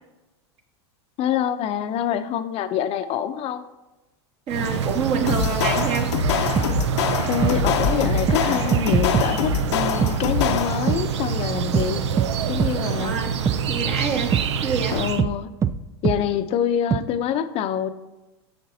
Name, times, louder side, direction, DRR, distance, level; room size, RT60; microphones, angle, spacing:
voice 1, 1.2-3.6 7.3-12.0 12.5-13.2 14.9-15.5 16.0-17.9, left 9 dB, 45° left, 9 dB, 0.6 m, -25 dB
voice 2, 4.5-6.2 13.0-13.3 13.7-14.3 14.6-15.0, right 5 dB, 45° right, 1 dB, 1.7 m, -26 dB
sound 1, 4.5-15.2, right 7 dB, 85° right, 0.6 m, -26 dB
sound 2, 5.3-11.0, left 7 dB, 80° left, 0.8 m, -25 dB
sound 3, 6.6-6.7 7.4-7.6 8.3-8.4 8.7-9.3 10.0-10.1 10.9-11.0 11.7-11.9 12.2-12.3 12.6-12.7 13.5-13.6 14.3-14.5 15.2-15.3 15.6-15.7 16.0-16.2 16.9-17.0, right 7 dB, 20° right, 0.4 m, -21 dB
10.0 x 6.8 x 2.7 m, 1.0 s
hypercardioid pair, 100°, 14 cm